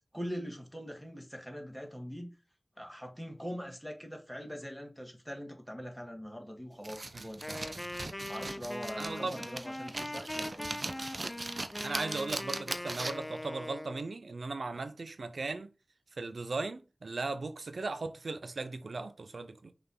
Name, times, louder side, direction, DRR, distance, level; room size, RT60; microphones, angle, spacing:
voice 1, 0.1-2.3 2.8-7.8 8.3-11.3, equal, ahead, 2.1 m, -43 dB
sound 1, 6.8-13.4, right 2 dB, 50° right, 0.8 m, -40 dB
Wind instrument woodwind instrument, 7.4-14.1, left 1 dB, 25° left, 0.5 m, -41 dB
voice 2, 9.0-9.4 11.8-15.7 16.2-19.7, right 3 dB, 85° right, 0.5 m, -37 dB
5.8 x 3.4 x 5.5 m
cardioid pair, 40°, 0 cm